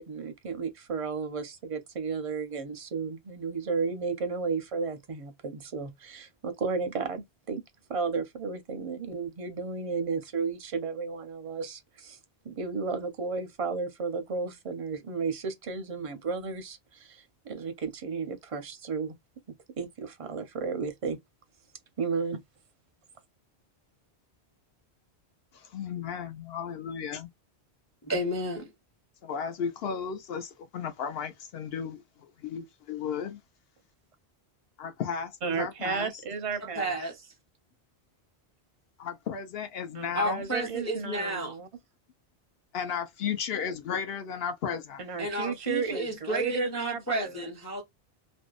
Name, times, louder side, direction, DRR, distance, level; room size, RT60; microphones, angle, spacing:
voice 1, 0.0-7.6 7.9-12.2 12.4-19.1 19.8-21.2 22.0-22.4 35.4-36.9 39.9-41.7 45.0-47.5, right 5 dB, 45° right, 0.5 m, -33 dB
voice 2, 25.5-27.3 29.2-32.0 32.4-33.4 34.8-36.1 39.0-40.4 42.7-45.0, left 7 dB, 70° left, 0.8 m, -34 dB
voice 3, 28.0-28.7 36.7-37.1 40.1-41.6 45.2-47.8, right 1 dB, 20° left, 0.4 m, -31 dB
2.6 x 2.1 x 2.3 m
omnidirectional pair, 1.1 m